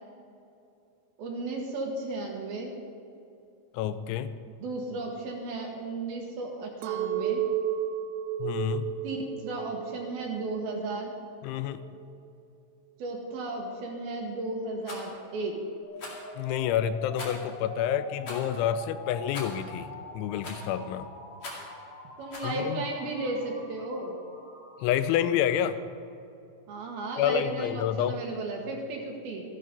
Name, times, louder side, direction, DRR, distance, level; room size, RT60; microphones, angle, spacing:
voice 1, 1.2-2.7 4.6-7.4 9.0-9.2 9.4-11.1 13.0-15.6 22.2-24.2 26.7-29.4, right 2 dB, 65° right, 0 dB, 2.8 m, -34 dB
voice 2, 3.7-4.3 8.4-8.9 11.4-11.8 16.4-19.9 20.1-21.1 22.4-22.8 24.8-25.8 27.2-28.2, left 10 dB, 85° left, 13 dB, 2.9 m, -28 dB
Chink clink, 6.8-11.1 11.6-12.1, right 10 dB, 85° right, 3.0 m, -33 dB
Rattle, 14.8-15.0 16.0-16.3 17.2-17.5 18.2-18.5 19.3-19.6 20.4-20.7 21.4-21.7 22.3-22.5, left 2 dB, 40° left, 2.5 m, -41 dB
sound 1, 15.8-25.8, left 1 dB, 70° left, 5.3 m, -45 dB
14.5 x 11.5 x 5.3 m, 2.7 s
omnidirectional pair, 5.4 m